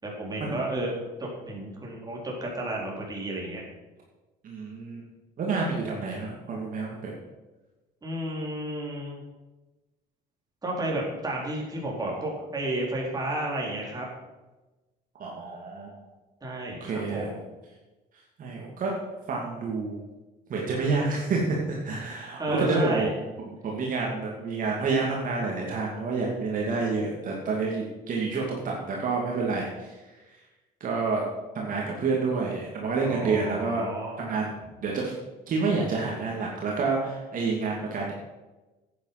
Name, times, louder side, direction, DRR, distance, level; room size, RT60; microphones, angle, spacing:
voice 1, 0.0-3.6 8.0-9.2 10.6-14.1 16.4-17.4 22.4-23.1 33.0-34.3, right 1 dB, 20° right, -2 dB, 4.0 m, -32 dB
voice 2, 4.4-5.0 5.4-7.1 15.2-16.1 16.8-17.2 18.4-18.9 19.3-20.0 20.5-23.1 23.4-30.0 30.8-31.2 31.5-33.9 34.2-35.1 35.5-38.1, right 4 dB, 55° right, -2 dB, 2.4 m, -28 dB
10.0 x 9.0 x 5.9 m, 1.1 s
cardioid pair, 110°, 17 cm